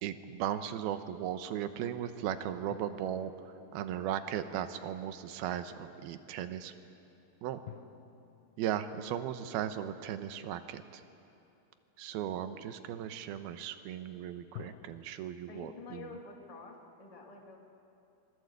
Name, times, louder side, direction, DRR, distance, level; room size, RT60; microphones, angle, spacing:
voice 1, 0.0-3.3 3.7-6.7 7.4-7.6 8.6-11.0 12.0-16.1, right 10 dB, 75° right, 10 dB, 2.8 m, -37 dB
sound 1, 2.7-4.7 7.7-10.9 14.5-15.0, left 11 dB, 85° left, 2.8 m, -53 dB
voice 2, 15.5-17.6, left 3 dB, 15° left, 0 dB, 1.6 m, -48 dB
27.0 x 22.0 x 8.1 m, 2.9 s
omnidirectional pair, 4.6 m